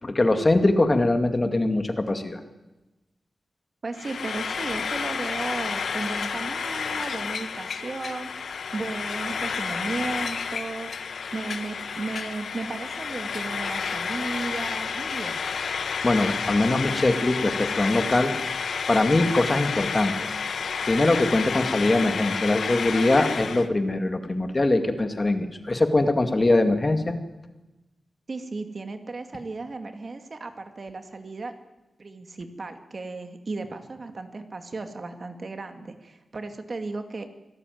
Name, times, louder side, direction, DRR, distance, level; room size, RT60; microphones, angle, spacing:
voice 1, 0.0-2.4 16.0-18.3 18.9-20.2 20.9-27.2, left 2 dB, 25° left, 7 dB, 2.2 m, -22 dB
voice 2, 3.8-11.0 11.3-15.4 28.3-31.5 32.0-37.3, right 3 dB, 40° right, 7 dB, 2.3 m, -35 dB
Frying (food), 3.9-23.7, left 6 dB, 85° left, 1.5 m, -30 dB
26.0 x 18.5 x 9.4 m, 1.0 s
wide cardioid pair, 155°, 0 cm